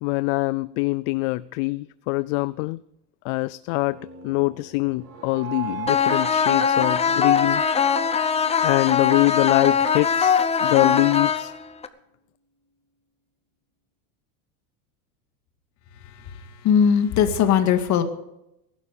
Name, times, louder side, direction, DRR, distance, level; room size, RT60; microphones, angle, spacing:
voice 1, 0.0-2.8 3.2-4.0 4.2-7.6 8.6-11.5, left 23 dB, 60° left, 0.5 m, -24 dB
sound 1, 3.8-9.9, right 5 dB, 80° right, 5.0 m, -39 dB
sound 2, 5.9-11.9, left 6 dB, 15° left, 0.8 m, -21 dB
voice 2, 16.0-18.0, left 8 dB, 40° left, 2.0 m, -20 dB
20.0 x 11.5 x 5.1 m
supercardioid pair, 145°, 42 cm